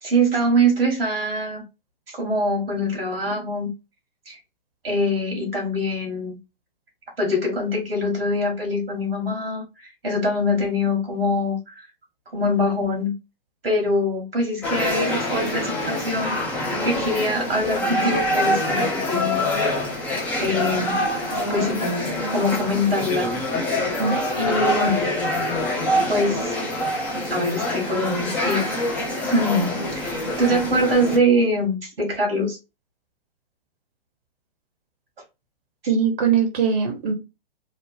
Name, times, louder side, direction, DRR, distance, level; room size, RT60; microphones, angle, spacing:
voice 1, 0.0-1.6 2.1-3.7 4.3-4.4 4.8-6.4 7.2-11.9 12.3-13.1 13.6-16.4 16.8-19.4 20.4-21.0 21.5-23.3 23.8-23.9 24.4-24.9 26.1-26.6 27.3-28.8 29.2-32.6, equal, 80° right, 1.2 m, -23 dB
sound 1, 14.6-31.2, left 1 dB, 5° left, 0.4 m, -25 dB
voice 2, 35.9-37.1, right 6 dB, 55° right, 0.8 m, -21 dB
2.9 x 2.0 x 3.2 m
figure-of-eight pair, 120°, 29 cm